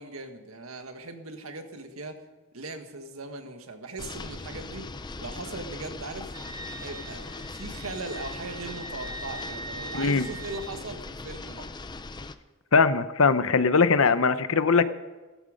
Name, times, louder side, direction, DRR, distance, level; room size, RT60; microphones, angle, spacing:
voice 1, 0.0-2.2 2.5-4.9 5.2-6.3 6.8-11.7, right 2 dB, 90° right, 6 dB, 1.7 m, -39 dB
sound 1, 4.0-12.3, left 3 dB, 20° left, 0.6 m, -40 dB
Wind instrument woodwind instrument, 6.3-10.8, right 2 dB, 20° right, 2.8 m, -42 dB
voice 2, 9.9-10.3 12.7-14.8, left 4 dB, 75° left, 12 dB, 0.8 m, -21 dB
15.5 x 14.5 x 5.2 m, 1.2 s
head